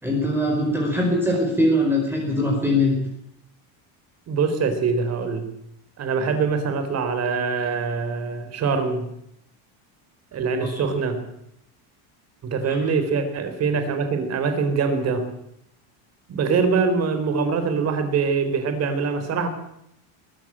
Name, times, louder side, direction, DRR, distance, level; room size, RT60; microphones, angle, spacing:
voice 1, 0.0-3.0 10.6-10.8 12.6-12.8, left 1 dB, 5° right, -1 dB, 4.7 m, -22 dB
voice 2, 4.3-5.5 6.0-9.1 10.3-11.2 12.4-15.3 16.3-19.5, right 5 dB, 35° right, 8 dB, 4.1 m, -23 dB
21.0 x 14.5 x 8.9 m, 0.75 s
cardioid pair, 150°, 43 cm